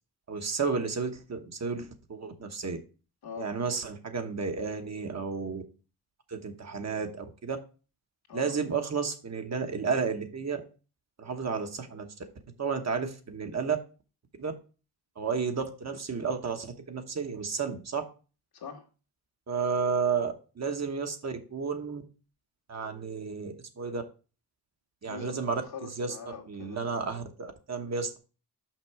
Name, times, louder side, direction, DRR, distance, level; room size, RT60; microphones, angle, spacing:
voice 1, 0.3-2.8 3.4-5.6 6.3-7.6 8.3-10.6 11.2-12.1 12.6-13.8 14.4-14.5 15.2-18.0 19.5-22.0 22.7-24.0 25.0-25.6 26.0-26.1 26.5-28.2, right 5 dB, 45° right, 5 dB, 1.1 m, -32 dB
voice 2, 3.2-3.5 8.3-8.6 18.5-18.8 25.0-27.1, left 5 dB, 75° left, 1 dB, 1.9 m, -43 dB
6.0 x 6.0 x 4.6 m, 0.34 s
wide cardioid pair, 135°, 38 cm